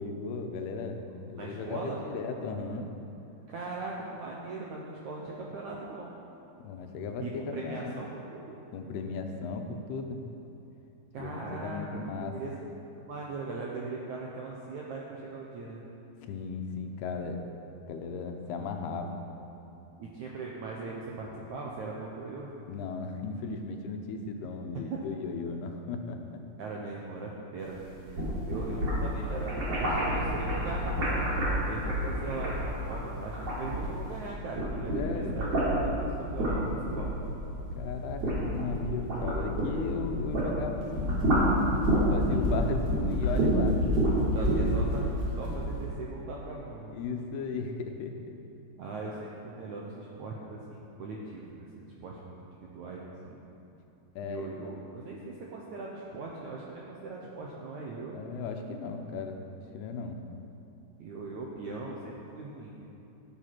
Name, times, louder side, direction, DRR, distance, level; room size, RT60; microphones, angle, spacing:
voice 1, 0.0-2.9 6.6-8.0 8.7-10.2 11.2-12.4 16.2-17.4 17.9-19.2 22.7-26.4 34.9-35.4 37.8-41.3 41.8-43.8 44.4-44.5 44.8-45.0 46.9-48.3 54.2-55.2 58.1-59.4 59.7-60.2, left 4 dB, 80° left, 4 dB, 2.8 m, -36 dB
voice 2, 1.4-2.0 3.5-6.1 7.2-8.6 11.1-12.5 13.0-15.8 20.0-22.5 24.9-25.0 26.6-31.3 31.7-37.1 44.3-46.9 48.8-52.3 52.6-53.6 54.2-58.2 61.0-62.8, right 3 dB, 75° right, -3 dB, 1.8 m, -40 dB
sound 1, 27.9-34.2 34.5-40.5 40.8-45.6, equal, 40° right, 3.9 m, -28 dB
15.5 x 8.2 x 6.0 m, 2.9 s
omnidirectional pair, 4.8 m